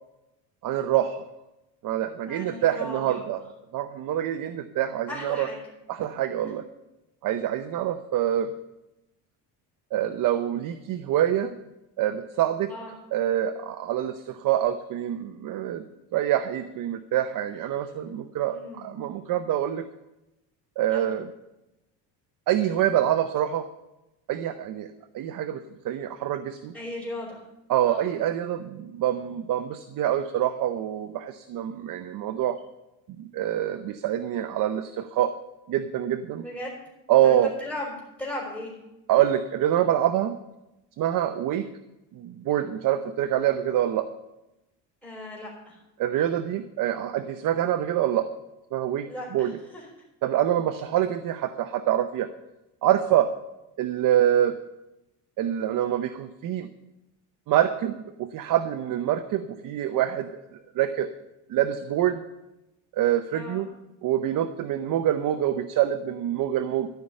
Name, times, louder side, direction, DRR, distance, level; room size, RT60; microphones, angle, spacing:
voice 1, 0.6-1.2 1.8-3.4 3.7-5.5 5.9-6.7 7.2-8.5 9.9-11.6 12.0-12.7 13.1-15.8 16.1-19.8 20.8-21.3 22.5-23.7 24.3-24.9 25.1-26.7 27.7-32.6 33.2-35.3 35.7-36.4 37.1-37.5 39.1-40.4 41.0-41.7 42.1-44.1 46.0-48.3 48.7-49.1 49.3-49.5 50.2-52.3 52.8-53.3 53.8-54.5 55.4-56.7 57.5-60.3 60.8-61.1 61.5-62.2 62.9-63.7 64.0-66.9, right 11 dB, 50° right, 10 dB, 0.7 m, -25 dB
voice 2, 2.3-3.2 5.1-5.6 6.4-6.5 12.7-12.9 18.5-18.9 20.9-21.0 26.7-27.4 27.9-28.1 36.4-36.7 37.2-38.8 45.0-45.8 49.0-49.9 63.3-63.6, left 1 dB, ahead, -5 dB, 4.3 m, -37 dB
13.0 x 5.5 x 9.0 m, 0.96 s
cardioid pair, 135°, 43 cm